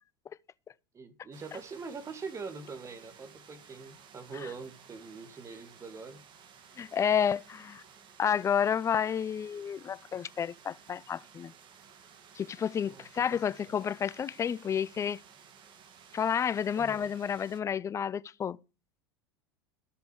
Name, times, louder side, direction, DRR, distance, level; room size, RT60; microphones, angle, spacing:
voice 1, 0.9-6.2 12.8-13.8 16.7-17.1, right 4 dB, 25° right, 2.1 m, -44 dB
sound 1, 1.3-17.6, right 7 dB, 40° right, 2.2 m, -56 dB
voice 2, 6.8-7.8 8.2-11.5 12.3-15.2 16.1-18.6, left 8 dB, 25° left, 0.5 m, -30 dB
14.0 x 6.9 x 4.7 m
hypercardioid pair, 85°, 12 cm